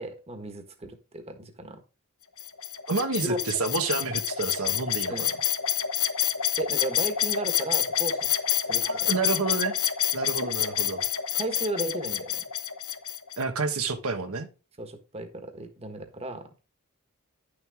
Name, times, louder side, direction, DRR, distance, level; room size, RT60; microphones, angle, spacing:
voice 1, 0.0-1.8 3.3-3.4 5.1-5.3 6.6-9.1 10.4-10.5 11.3-12.4 14.8-16.5, right 1 dB, 30° right, 1.4 m, -35 dB
sound 1, 2.4-13.4, left 10 dB, 85° left, 1.0 m, -28 dB
voice 2, 2.9-5.3 8.8-9.8 10.1-11.0 13.4-14.5, right 4 dB, 90° right, 1.3 m, -29 dB
10.5 x 6.7 x 3.6 m
head